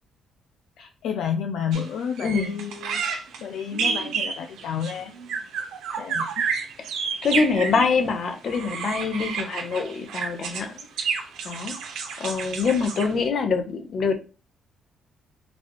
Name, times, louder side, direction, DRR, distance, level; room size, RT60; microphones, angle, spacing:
voice 1, 0.8-3.1 3.4-5.1 6.0-6.4, left 7 dB, 80° left, 5 dB, 0.4 m, -30 dB
sound 1, 1.7-1.8 2.2-8.0 8.4-13.3, right 5 dB, 85° right, 0.7 m, -30 dB
voice 2, 2.2-2.6 7.2-10.9 11.4-11.7 12.2-14.1, left 5 dB, 60° left, 6 dB, 0.8 m, -25 dB
4.1 x 2.4 x 3.0 m, 0.32 s
cardioid pair, 90°, 0 cm